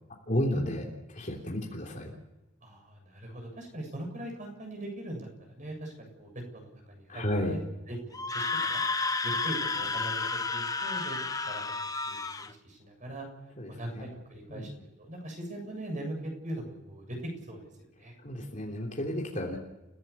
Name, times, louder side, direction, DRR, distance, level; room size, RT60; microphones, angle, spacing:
voice 1, 0.3-0.9 1.1-2.1 7.1-7.5 13.6-14.1 14.5-14.7 18.2-19.6, equal, 35° left, -1 dB, 3.3 m, -32 dB
voice 2, 2.6-7.6 7.9-8.8 9.2-11.2 11.5-11.7 12.1-13.3 13.7-17.7 18.0-18.1, right 1 dB, 35° right, 3 dB, 7.6 m, -41 dB
Screaming, 8.1-12.5, left 3 dB, 15° left, 0.8 m, -31 dB
30.0 x 17.0 x 7.1 m, 1.0 s
head